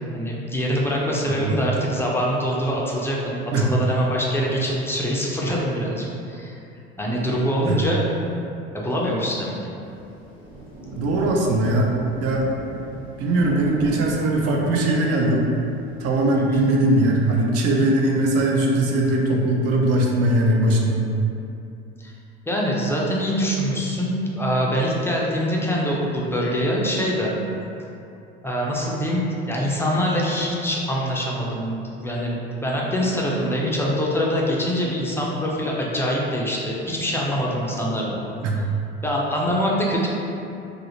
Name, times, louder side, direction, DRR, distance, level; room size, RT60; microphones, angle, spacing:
voice 1, 0.1-6.6 7.0-8.0 8.7-9.5 16.3-16.7 22.0-22.1 22.5-27.3 28.4-38.2 39.0-40.1, equal, 10° left, -4 dB, 0.4 m, -24 dB
voice 2, 1.2-1.6 3.5-3.7 7.7-7.8 10.9-11.9 12.2-12.4 13.2-15.5 16.0-21.1 38.4-38.6, right 1 dB, 50° right, -1 dB, 0.5 m, -20 dB
Rain, 9.8-17.1, right 1 dB, 75° right, 1.0 m, -38 dB
2.5 x 2.0 x 2.9 m, 2.7 s
hypercardioid pair, 75°, 32 cm